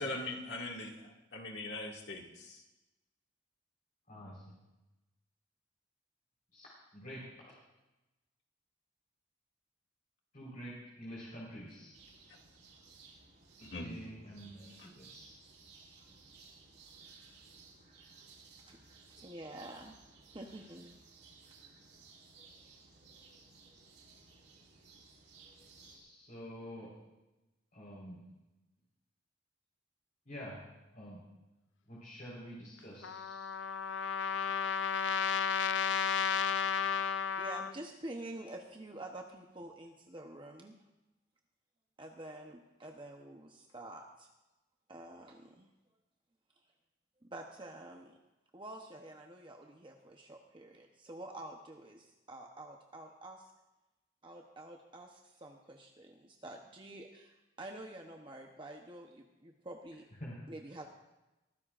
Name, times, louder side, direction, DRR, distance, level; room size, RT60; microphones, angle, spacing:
voice 1, 0.0-2.6 13.6-13.9 14.8-14.9, left 2 dB, 65° left, 0 dB, 2.1 m, -41 dB
voice 2, 4.1-4.5 6.5-7.6 10.3-11.9 13.6-15.4 16.1-16.2 25.7-26.9 27.7-28.2 30.2-30.6 30.9-31.2 31.9-33.5 60.2-60.4, equal, 50° left, -6 dB, 4.3 m, -48 dB
sound 1, 11.9-26.0, right 4 dB, 70° right, 4.3 m, -58 dB
voice 3, 19.1-20.0 20.3-21.0 36.3-40.7 42.0-44.3 44.9-45.7 47.2-48.2 48.5-53.5 54.2-60.1 60.5-60.9, right 1 dB, 25° right, 2 dB, 0.9 m, -48 dB
Trumpet, 33.0-37.7, left 6 dB, 85° left, 0.5 m, -33 dB
22.5 x 15.0 x 2.5 m, 1.0 s
head